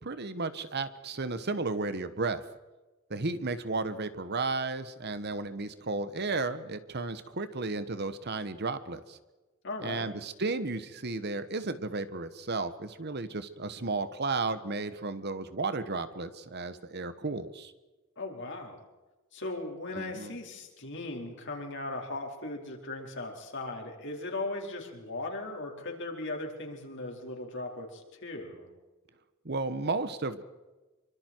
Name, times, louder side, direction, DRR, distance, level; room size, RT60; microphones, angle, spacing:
voice 1, 0.0-2.4 3.1-9.2 9.8-17.7 19.9-20.3 29.4-30.4, right 3 dB, 50° right, 12 dB, 1.2 m, -33 dB
voice 2, 9.6-10.1 18.2-18.8 19.3-28.7, left 2 dB, 60° left, 1 dB, 4.6 m, -38 dB
26.5 x 24.5 x 4.6 m, 1.2 s
head